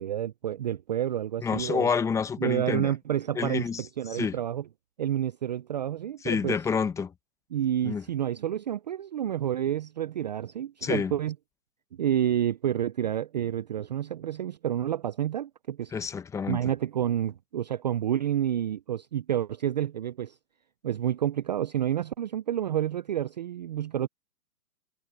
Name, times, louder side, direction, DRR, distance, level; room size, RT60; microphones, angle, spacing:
voice 1, 0.0-1.9 2.4-4.6 5.0-6.6 7.5-11.3 11.9-15.9 16.5-20.4 20.8-24.1, right 10 dB, 30° right, 0.5 m, -29 dB
voice 2, 1.4-2.9 3.4-3.8 4.1-4.4 6.2-7.1 7.8-8.0 10.8-11.1 15.9-16.7, left 6 dB, 5° left, 0.9 m, -28 dB
hypercardioid pair, 140°, 46 cm